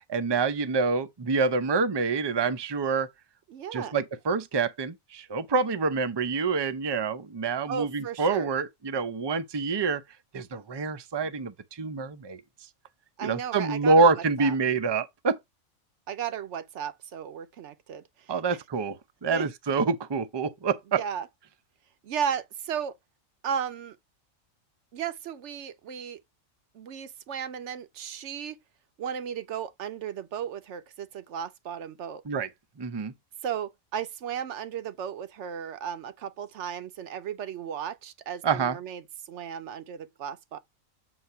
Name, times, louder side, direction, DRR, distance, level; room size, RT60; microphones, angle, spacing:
voice 1, 0.1-3.1 3.7-10.0 10.3-12.4 13.2-15.4 18.3-19.0 19.2-21.0 32.3-32.5 32.8-33.1 38.4-38.8, right 4 dB, 30° right, 0.4 m, -26 dB
voice 2, 3.5-3.9 7.7-8.5 13.2-14.5 16.1-18.0 18.5-18.6 19.3-19.5 21.0-21.3 22.0-23.0 23.4-24.0 24.9-26.2 26.7-28.6 29.0-32.2 33.4-40.6, right 8 dB, 65° right, 1.0 m, -35 dB
7.8 x 2.7 x 5.6 m
omnidirectional pair, 1.4 m